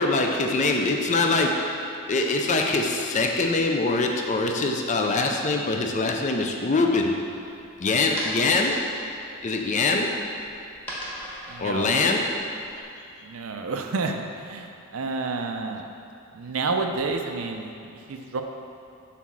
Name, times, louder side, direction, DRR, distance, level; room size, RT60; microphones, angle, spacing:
voice 1, 0.0-1.8 2.1-7.2 7.8-8.9 9.4-10.2 11.6-12.5, left 3 dB, 35° left, 2 dB, 0.4 m, -23 dB
sound 1, 6.9-12.8, equal, 5° left, 1.1 m, -39 dB
voice 2, 11.5-12.0 13.2-15.9 16.3-18.4, right 3 dB, 65° right, 4 dB, 0.5 m, -30 dB
5.8 x 4.1 x 6.1 m, 2.7 s
head